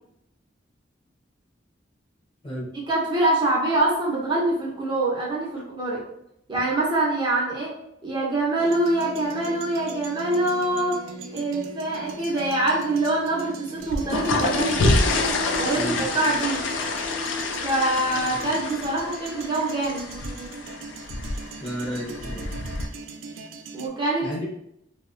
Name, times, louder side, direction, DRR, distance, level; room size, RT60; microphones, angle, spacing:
voice 1, 2.9-6.0 6.5-7.8 8.0-15.0 15.6-16.6 17.6-20.0 23.7-24.3, right 2 dB, 25° right, -4 dB, 0.5 m, -24 dB
sound 1, 8.6-23.9, right 3 dB, 90° right, 0.3 m, -40 dB
sound 2, 13.8-22.9, left 3 dB, 75° left, 0.4 m, -27 dB
voice 2, 15.8-16.1 21.6-22.5 24.2-24.5, equal, 25° left, -3 dB, 0.6 m, -32 dB
2.7 x 2.1 x 2.5 m, 0.77 s
head